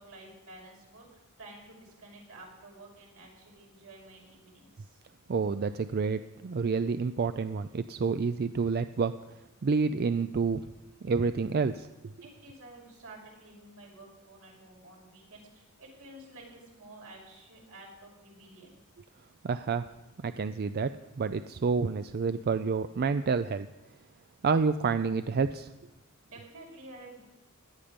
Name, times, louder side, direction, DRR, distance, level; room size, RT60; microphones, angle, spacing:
voice 1, 0.0-5.0 12.2-18.8 26.2-27.2, right 2 dB, 80° right, -1 dB, 5.8 m, -51 dB
voice 2, 5.3-9.1 9.6-10.6 11.0-11.9 19.4-19.8 20.2-23.7 24.4-25.7, right 5 dB, 45° right, 12 dB, 0.4 m, -28 dB
17.5 x 11.5 x 5.2 m, 1.0 s
head